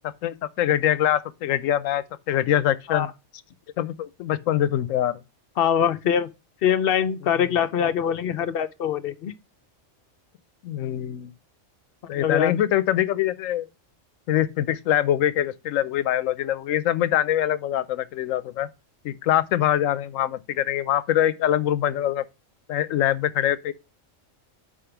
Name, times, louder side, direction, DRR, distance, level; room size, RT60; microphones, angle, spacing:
voice 1, 0.2-3.1 3.8-5.2 10.6-11.3 12.1-13.7 14.3-18.7 19.0-22.2 22.7-23.7, left 11 dB, 85° left, 1.0 m, -24 dB
voice 2, 5.6-6.3 6.6-9.3 12.1-12.5, left 8 dB, 60° left, 0.6 m, -23 dB
5.0 x 4.9 x 5.8 m
omnidirectional pair, 1.3 m